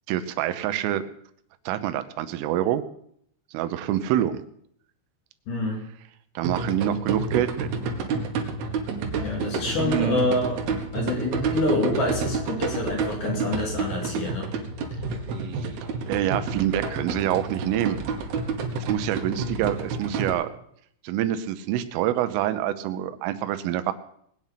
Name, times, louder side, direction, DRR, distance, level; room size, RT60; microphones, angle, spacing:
voice 1, 0.1-1.0 1.7-2.8 3.5-4.4 6.4-7.7 9.8-10.2 16.1-18.0 18.8-20.5 21.0-23.9, right 12 dB, 85° right, 11 dB, 3.5 m, -26 dB
voice 2, 5.5-5.8 9.2-10.6 10.9-14.5, left 2 dB, 50° left, 0 dB, 3.3 m, -26 dB
sound 1, 6.4-20.3, right 4 dB, 65° right, 3.0 m, -30 dB
20.0 x 9.2 x 5.8 m, 0.69 s
omnidirectional pair, 5.7 m